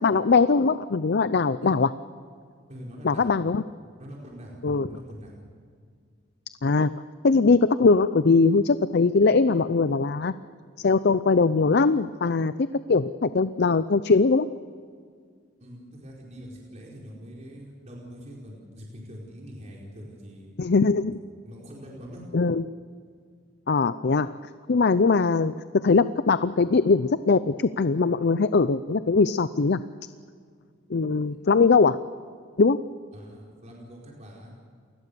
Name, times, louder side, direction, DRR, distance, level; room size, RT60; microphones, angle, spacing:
voice 1, 0.0-1.9 3.0-3.6 4.6-4.9 6.6-6.9 7.2-10.3 10.8-12.5 12.9-14.5 20.6-21.1 22.3-22.6 23.7-24.3 24.7-29.8 30.9-32.0 32.6-32.8, left 4 dB, 55° left, 13 dB, 0.6 m, -21 dB
voice 2, 2.7-3.3 4.0-5.4 15.6-20.5 21.4-22.3 31.2-31.5 33.1-34.5, equal, 35° right, -3 dB, 4.6 m, -43 dB
28.5 x 20.5 x 6.9 m, 2.1 s
head